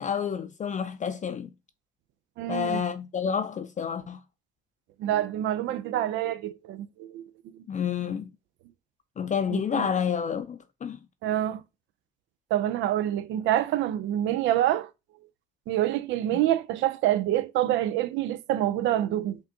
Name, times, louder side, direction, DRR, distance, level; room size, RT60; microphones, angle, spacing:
voice 1, 0.0-1.5 2.5-4.2 7.7-8.3 9.2-11.0, left 7 dB, 40° left, 0.4 m, -29 dB
voice 2, 2.4-2.8 5.0-7.6 9.5-9.9 11.2-11.6 12.5-14.9 15.7-19.4, right 12 dB, 75° right, 0.4 m, -27 dB
6.4 x 2.3 x 2.7 m
supercardioid pair, 55°, 19 cm